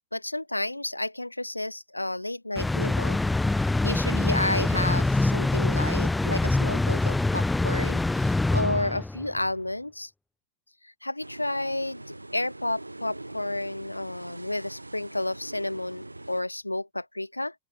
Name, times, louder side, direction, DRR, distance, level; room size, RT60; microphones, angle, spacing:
voice 1, 0.1-3.2 3.6-10.1 10.8-17.5, left 1 dB, 85° left, 6.3 m, -31 dB
sound 1, 2.6-9.3, left 2 dB, 5° left, 0.6 m, -25 dB
sound 2, 11.2-16.4, right 2 dB, 85° right, 6.4 m, -43 dB
open air
figure-of-eight pair, 90°, 0 cm